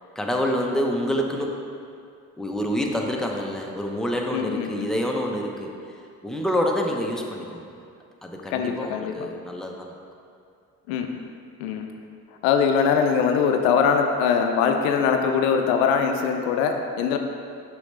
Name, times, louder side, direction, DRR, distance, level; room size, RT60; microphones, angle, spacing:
voice 1, 0.1-1.6 2.4-5.7 6.2-7.7 8.2-9.9, equal, ahead, 0 dB, 0.8 m, -27 dB
voice 2, 4.3-4.9 8.5-9.3 10.9-11.1 11.6-11.9 12.4-17.2, left 6 dB, 85° left, 5 dB, 0.5 m, -22 dB
6.3 x 5.4 x 3.3 m, 2.4 s
hypercardioid pair, 45°, 39 cm